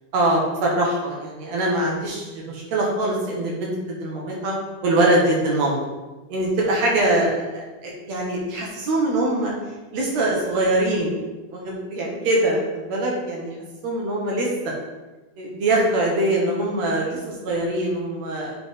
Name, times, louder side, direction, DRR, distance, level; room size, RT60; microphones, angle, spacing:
voice 1, 0.1-4.5 4.8-5.8 6.3-9.5 9.9-11.1 11.5-13.5 13.8-14.5 15.4-18.6, right 1 dB, 70° right, -2 dB, 1.7 m, -23 dB
9.4 x 4.3 x 3.6 m, 1.2 s
omnidirectional pair, 4.5 m